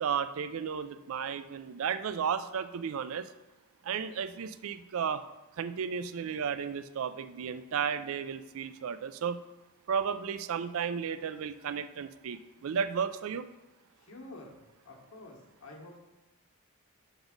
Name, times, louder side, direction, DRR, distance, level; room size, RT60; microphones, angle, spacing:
voice 1, 0.0-3.3 3.8-5.2 5.6-9.4 9.9-13.5, right 7 dB, 65° right, 12 dB, 0.4 m, -33 dB
voice 2, 14.0-16.0, left 2 dB, 65° left, -1 dB, 1.3 m, -49 dB
5.9 x 4.0 x 5.2 m, 1.1 s
head